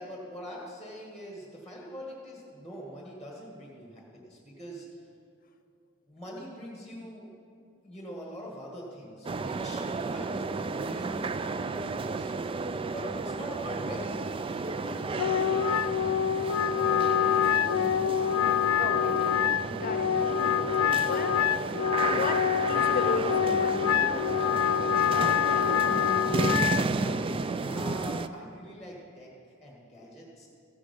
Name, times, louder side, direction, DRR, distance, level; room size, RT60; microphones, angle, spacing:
voice 1, 0.0-5.0 6.1-7.3 7.8-12.3 12.9-17.9 25.9-30.5, equal, ahead, -3 dB, 1.7 m, -44 dB
sound 1, 9.2-28.3, right 3 dB, 25° right, 0.3 m, -32 dB
Wind instrument woodwind instrument, 15.1-26.8, left 9 dB, 80° left, 0.3 m, -26 dB
voice 2, 18.8-19.4 19.7-20.1 21.1-21.4 22.0-24.7, left 3 dB, 40° left, 8 dB, 0.7 m, -35 dB
15.0 x 10.0 x 5.3 m, 2.4 s
head